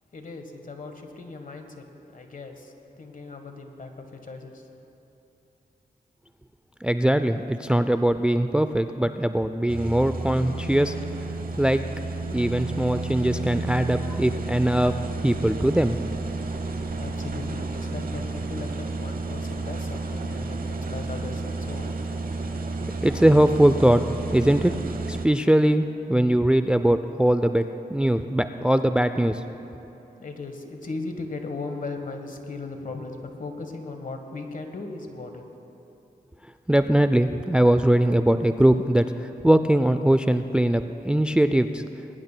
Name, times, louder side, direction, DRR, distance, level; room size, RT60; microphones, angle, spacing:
voice 1, 0.1-1.8 2.1-4.6 17.0-21.9 30.2-35.5, left 3 dB, 50° left, 5 dB, 1.2 m, -37 dB
voice 2, 6.8-10.9 11.6-11.8 12.3-14.9 15.2-16.0 23.0-24.0 24.3-24.7 25.1-29.4 36.7-41.8, right 1 dB, 5° right, 10 dB, 0.3 m, -21 dB
sound 1, 9.7-25.3, right 3 dB, 60° right, 0.8 m, -31 dB
21.0 x 10.5 x 2.2 m, 2.9 s
cardioid pair, 55°, 17 cm